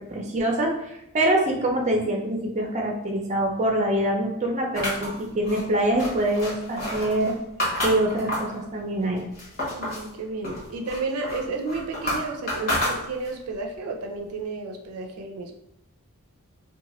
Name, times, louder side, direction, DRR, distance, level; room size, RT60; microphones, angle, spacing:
voice 1, 0.0-7.4 7.8-9.3, right 1 dB, 35° right, 1 dB, 0.5 m, -25 dB
sound 1, 4.8-8.6 9.0-10.1 10.4-13.5, left 1 dB, 45° left, 1.0 m, -30 dB
voice 2, 9.7-15.5, right 3 dB, 85° right, 2 dB, 0.4 m, -32 dB
2.8 x 2.2 x 2.9 m, 0.84 s
head